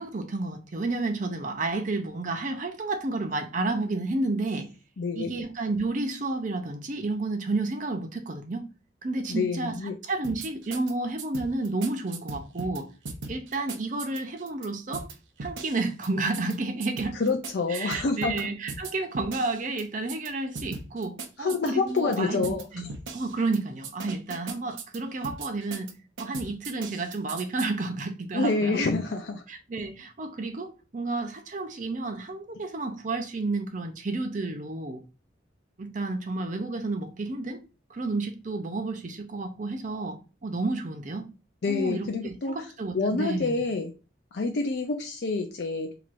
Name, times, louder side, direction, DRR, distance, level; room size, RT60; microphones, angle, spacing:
voice 1, 0.0-4.7 5.1-8.7 9.0-9.8 10.0-12.9 13.3-15.1 15.4-17.2 17.7-22.9 23.1-25.9 26.2-28.8 29.5-35.0 35.8-37.6 37.9-41.3 41.7-43.6, right 3 dB, 40° right, 0.6 m, -31 dB
voice 2, 5.0-5.3 9.3-10.0 17.2-18.5 21.4-22.7 28.3-29.4 41.6-42.7 42.9-43.9 44.3-45.9, left 3 dB, 60° left, 0.5 m, -27 dB
sound 1, 10.2-10.9 11.2-12.8 13.1-14.7 14.9-15.1 15.4-16.1 16.3-16.6 16.8-18.4 18.7-19.8 20.1-20.3 20.6-22.2 22.4-22.6 22.9-23.6 23.8-25.0 25.2-25.9 26.2-27.7, right 4 dB, 85° right, 0.7 m, -38 dB
4.7 x 2.9 x 2.5 m
head